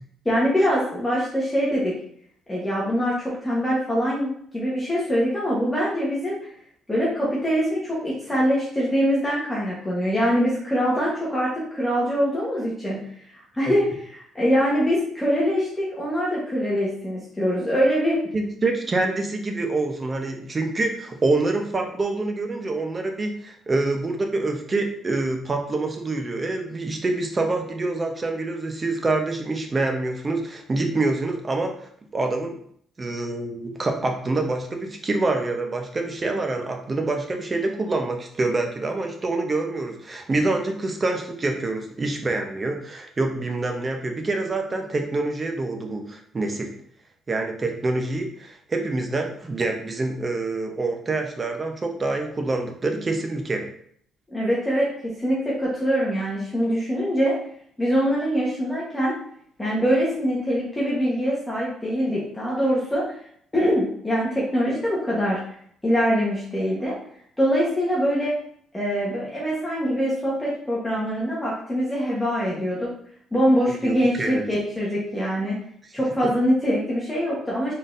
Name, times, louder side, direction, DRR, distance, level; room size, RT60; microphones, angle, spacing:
voice 1, 0.2-1.9 2.5-6.4 6.9-13.0 13.3-13.8 14.3-18.2 54.3-54.9 55.2-57.4 57.8-59.2 59.6-63.0 63.5-65.4 65.8-66.9 67.4-68.4 68.7-72.9 73.3-75.6 75.9-77.7, equal, 10° left, -6 dB, 1.2 m, -23 dB
voice 2, 18.3-31.7 32.1-32.6 33.0-46.7 47.3-53.7 73.7-74.4, right 2 dB, 30° right, 3 dB, 0.7 m, -26 dB
4.0 x 3.8 x 2.5 m, 0.64 s
cardioid pair, 105°, 0 cm